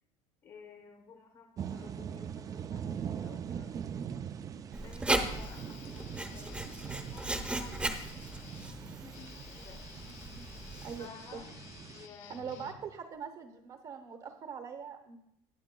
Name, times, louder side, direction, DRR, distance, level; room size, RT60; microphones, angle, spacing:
voice 1, 0.4-4.2 4.8-9.9 11.0-11.5 11.9-12.8, left 6 dB, 35° left, 3 dB, 0.9 m, -54 dB
sound 1, 1.6-12.1, right 8 dB, 25° right, 0.3 m, -42 dB
Writing, 4.7-11.1, right 2 dB, 10° right, 0.8 m, -37 dB
Guitar, 5.1-13.2, left 8 dB, 70° left, 1.1 m, -53 dB
voice 2, 10.8-11.4 12.3-15.2, right 7 dB, 40° right, 5 dB, 0.9 m, -42 dB
18.5 x 7.4 x 2.2 m, 0.77 s
cardioid pair, 135°, 14 cm